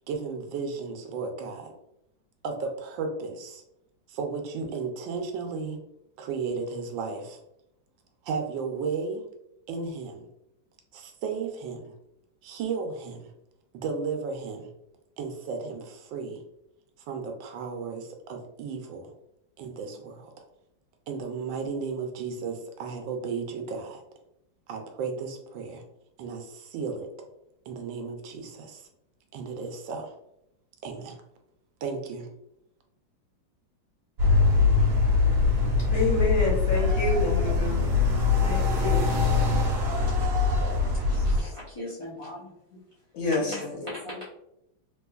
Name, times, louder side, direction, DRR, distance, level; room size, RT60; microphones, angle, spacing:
voice 1, 0.1-1.7 2.4-3.6 4.1-5.8 6.2-7.4 8.2-9.2 9.7-10.3 10.9-12.0 12.4-13.3 13.8-14.7 15.2-16.4 17.1-19.1 19.6-20.4 21.1-24.0 24.7-25.8 26.2-27.1 27.7-28.9 29.3-30.1 30.8-31.2 31.8-32.3, right 5 dB, 80° right, 1.3 m, -34 dB
sound 1, 34.2-41.4, left 4 dB, 55° right, 1.3 m, -23 dB
voice 2, 35.9-37.9 38.4-39.2 43.1-43.7, left 2 dB, 75° left, 1.8 m, -28 dB
voice 3, 40.8-42.5 43.4-44.2, left 1 dB, 50° left, 0.3 m, -39 dB
3.3 x 3.0 x 2.3 m
omnidirectional pair, 2.1 m